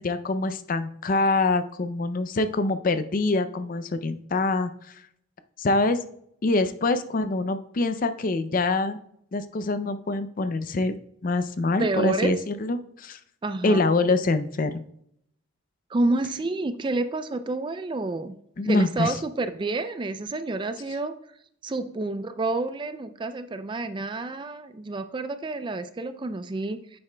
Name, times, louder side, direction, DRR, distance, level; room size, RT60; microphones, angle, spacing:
voice 1, 0.0-4.7 5.6-6.0 6.4-9.0 9.3-10.9 11.2-13.2 13.6-14.8 18.6-19.2, left 3 dB, 40° left, 11 dB, 0.5 m, -25 dB
voice 2, 11.8-12.3 13.4-13.9 15.9-18.3 18.6-21.2 21.6-27.0, right 2 dB, 25° right, 11 dB, 0.3 m, -29 dB
9.6 x 7.6 x 2.2 m, 0.70 s
head